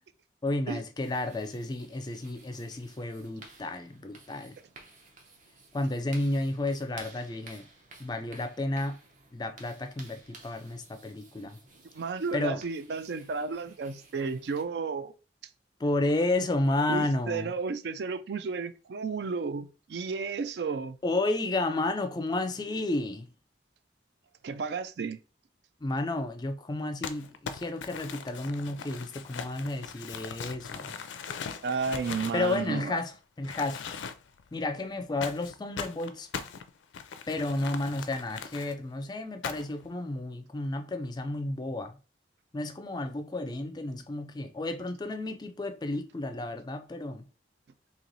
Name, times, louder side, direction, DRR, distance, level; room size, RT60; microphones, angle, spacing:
voice 1, 0.4-4.6 5.7-7.7 8.0-9.0 9.3-11.6 12.3-12.6 15.8-17.5 21.0-23.3 25.8-30.9 32.3-33.8 34.5-36.3 37.3-42.0 42.5-47.3, left 2 dB, 20° left, 0.4 m, -32 dB
sound 1, 1.0-14.6, right 3 dB, 45° right, 0.8 m, -54 dB
voice 2, 11.9-15.1 16.9-21.0 24.4-25.2 31.6-33.0, right 5 dB, 65° right, 0.4 m, -32 dB
Crumpling crinkling, 27.0-33.1 33.4-34.4 35.2-38.7 39.4-39.9, left 6 dB, 90° left, 0.4 m, -40 dB
3.1 x 2.8 x 3.9 m
head